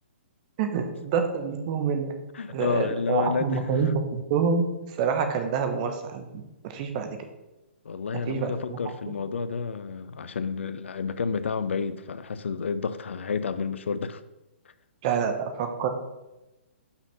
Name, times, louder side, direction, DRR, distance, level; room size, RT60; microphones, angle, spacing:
voice 1, 0.6-2.1 2.5-6.3 6.6-7.1 8.3-8.8 9.1-9.2 15.0-15.9, right 6 dB, 40° right, 1.1 m, -27 dB
voice 2, 2.3-3.6 7.8-14.2, left 5 dB, 80° left, 0.6 m, -30 dB
5.9 x 5.7 x 5.7 m
hypercardioid pair, 140°, 6 cm